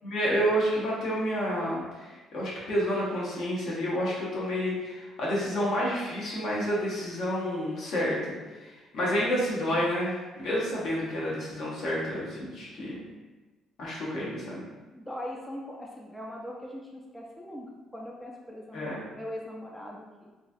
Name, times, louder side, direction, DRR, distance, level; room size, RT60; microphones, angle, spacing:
voice 1, 0.0-13.0 13.8-14.6 18.7-19.0, equal, 65° left, -6 dB, 1.1 m, -29 dB
voice 2, 14.9-17.7 17.9-20.3, left 1 dB, 5° left, -2 dB, 0.5 m, -40 dB
3.0 x 2.3 x 2.6 m, 1.2 s
supercardioid pair, 70°, 0 cm